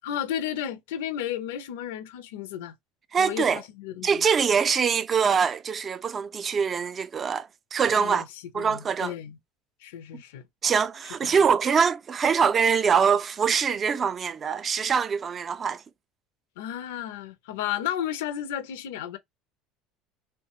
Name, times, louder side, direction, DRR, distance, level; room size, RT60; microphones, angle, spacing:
voice 1, 0.0-2.7 3.2-4.2 8.0-8.2 8.5-9.4 9.8-10.5 11.2-11.3 16.6-19.2, left 10 dB, 90° left, 0.4 m, -33 dB
voice 2, 3.1-3.6 4.0-8.3 8.5-9.1 10.6-15.8, right 6 dB, 30° right, 0.3 m, -24 dB
3.1 x 2.1 x 2.7 m
supercardioid pair, 110°, 0 cm